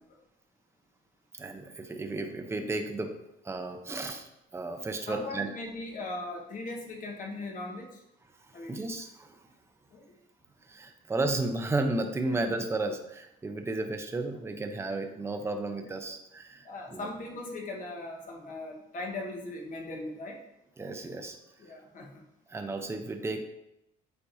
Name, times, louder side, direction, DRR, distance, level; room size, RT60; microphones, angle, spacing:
voice 1, 1.3-3.1 3.4-5.5 8.6-9.4 10.7-17.1 20.8-21.4 22.5-23.4, right 2 dB, 15° right, 5 dB, 0.7 m, -33 dB
voice 2, 5.1-8.0 8.5-8.9 9.9-10.2 12.3-12.4 16.6-20.4 21.6-22.2, left 2 dB, 50° left, 0 dB, 1.3 m, -39 dB
8.2 x 4.6 x 2.7 m, 0.84 s
cardioid pair, 110°, 17 cm